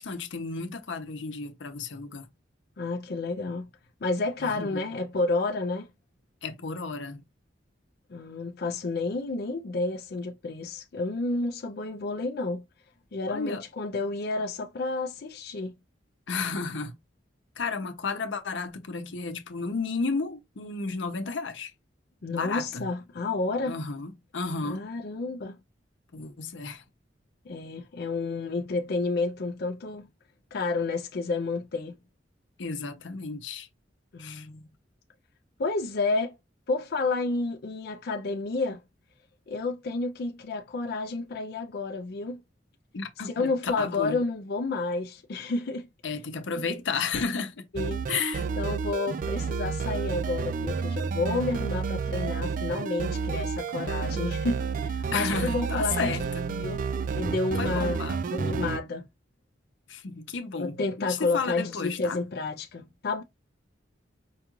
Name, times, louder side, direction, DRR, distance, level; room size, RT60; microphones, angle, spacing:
voice 1, 0.0-2.3 4.4-4.8 6.4-7.2 13.3-13.6 16.3-16.9 17.6-21.7 22.3-22.9 23.6-24.8 26.1-26.8 32.6-33.7 34.2-34.5 42.9-44.2 46.0-47.7 48.1-48.4 55.1-56.5 57.6-58.4 59.9-62.2, left 4 dB, 90° left, 0.7 m, -33 dB
voice 2, 2.8-3.7 4.0-5.9 8.1-12.6 13.1-15.7 22.2-23.8 24.6-25.6 27.5-30.1 30.5-32.0 34.1-34.7 35.6-36.4 36.7-38.8 39.5-42.4 43.2-45.9 47.7-48.0 48.6-56.1 56.6-56.8 57.1-58.0 58.3-59.1 60.6-63.2, left 3 dB, 60° left, 0.5 m, -30 dB
sound 1, 47.7-58.8, right 5 dB, 45° right, 0.3 m, -30 dB
4.7 x 2.4 x 3.0 m
head